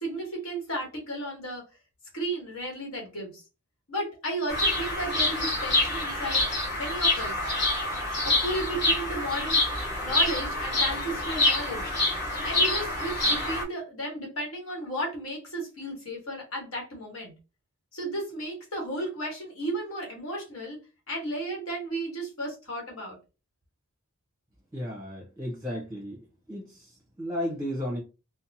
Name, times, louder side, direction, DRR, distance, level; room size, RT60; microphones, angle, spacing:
voice 1, 0.0-1.6 2.1-3.4 3.9-6.5 6.7-7.3 8.2-9.6 10.0-11.9 12.4-17.3 17.9-20.8 21.1-23.2, right 1 dB, 70° left, 1.2 m, -34 dB
Bird vocalization bird call bird song, 4.5-13.6, left 2 dB, 50° left, 1.2 m, -26 dB
voice 2, 24.7-26.2 26.5-28.0, equal, 15° right, 0.6 m, -34 dB
2.7 x 2.0 x 2.7 m
head